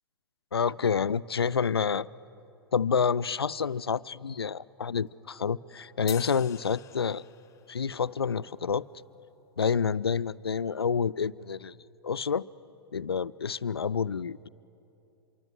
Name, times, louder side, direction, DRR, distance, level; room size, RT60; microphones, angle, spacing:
voice 1, 0.5-2.1 2.7-7.2 7.7-8.9 9.6-11.8 12.0-12.4 12.9-14.5, left 6 dB, 80° left, 0.5 m, -28 dB
sound 1, 4.8-10.2, right 1 dB, 20° right, 4.8 m, -65 dB
sound 2, 6.1-7.7, left 11 dB, 25° left, 0.9 m, -45 dB
25.5 x 24.0 x 8.0 m
figure-of-eight pair, 100°, 13 cm